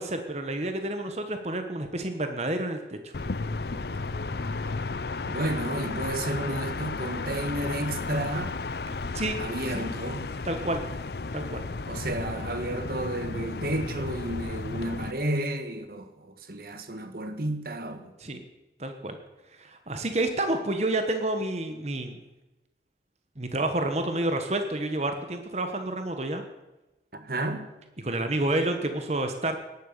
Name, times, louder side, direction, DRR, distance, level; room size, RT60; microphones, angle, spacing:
voice 1, 0.0-3.1 9.1-9.4 9.7-9.9 10.4-10.8 11.3-11.7 18.2-18.4 18.8-19.2 19.5-22.2 23.4-26.4 28.0-29.6, right 1 dB, 40° right, 7 dB, 1.3 m, -29 dB
sound 1, 3.1-15.1, left 3 dB, 65° left, 0.7 m, -33 dB
voice 2, 5.2-8.5 9.4-10.3 11.9-18.1 27.1-27.7, right 1 dB, 55° right, 8 dB, 1.5 m, -32 dB
18.0 x 11.0 x 6.8 m, 1.0 s
head